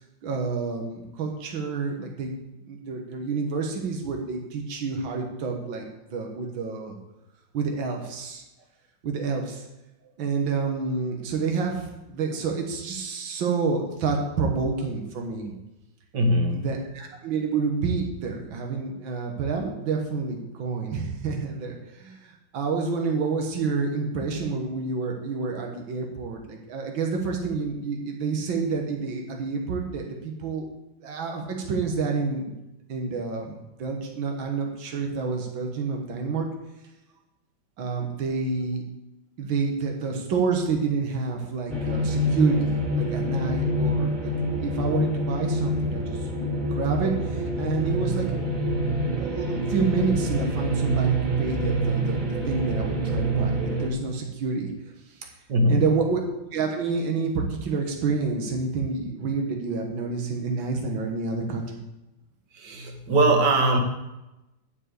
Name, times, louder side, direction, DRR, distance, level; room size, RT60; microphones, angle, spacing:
voice 1, 0.2-2.3 2.7-5.9 6.1-7.0 7.5-8.4 9.0-9.6 10.2-15.5 16.5-30.7 31.0-32.6 32.9-36.5 37.8-38.8 39.4-48.4 48.9-54.7 55.1-55.3 55.7-56.2 56.5-61.8, right 4 dB, 80° right, 1 dB, 2.1 m, -28 dB
voice 2, 16.1-16.7 55.5-55.8 62.5-63.8, right 1 dB, 60° right, 3 dB, 2.1 m, -21 dB
sound 1, 41.7-53.9, right 1 dB, 25° right, 2.1 m, -26 dB
11.0 x 4.9 x 8.2 m, 0.96 s
omnidirectional pair, 2.1 m